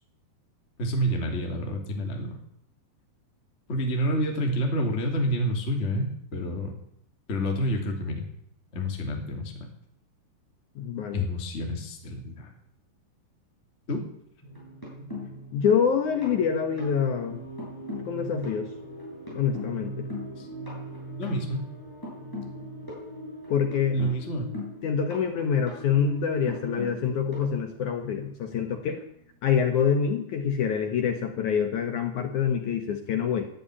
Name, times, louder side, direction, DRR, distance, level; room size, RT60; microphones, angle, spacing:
voice 1, 0.8-2.4 3.7-6.8 7.3-8.3 8.7-9.6 11.1-12.5 13.9-14.1 20.4-20.5 21.2-21.6 23.9-24.5, equal, 20° left, 1 dB, 2.4 m, -28 dB
voice 2, 10.8-11.3 15.5-17.4 18.1-18.7 19.3-20.1 23.5-24.0 24.8-29.0 29.4-33.5, left 7 dB, 65° left, 5 dB, 2.1 m, -26 dB
sound 1, 14.4-28.4 29.7-29.8 30.1-30.3, left 1 dB, 5° left, 7.2 m, -39 dB
13.0 x 11.0 x 9.8 m, 0.71 s
omnidirectional pair, 4.9 m